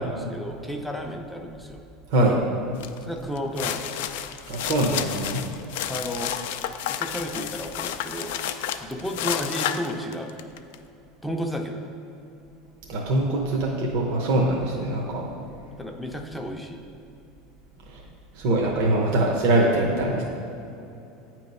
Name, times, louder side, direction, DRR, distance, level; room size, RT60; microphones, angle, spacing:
voice 1, 0.0-1.8 3.1-4.1 5.9-6.3 6.9-8.4 8.8-10.3 11.2-11.8 15.8-16.8, equal, 5° left, 2 dB, 0.5 m, -32 dB
voice 2, 2.1-2.4 4.5-5.5 12.9-15.2 17.9-18.0 18.3-20.2, right 1 dB, 70° right, -1 dB, 0.9 m, -23 dB
sound 1, 2.8-3.0 3.4-10.7, left 10 dB, 80° left, 0.3 m, -31 dB
8.7 x 3.0 x 5.3 m, 2.8 s
supercardioid pair, 145°, 0 cm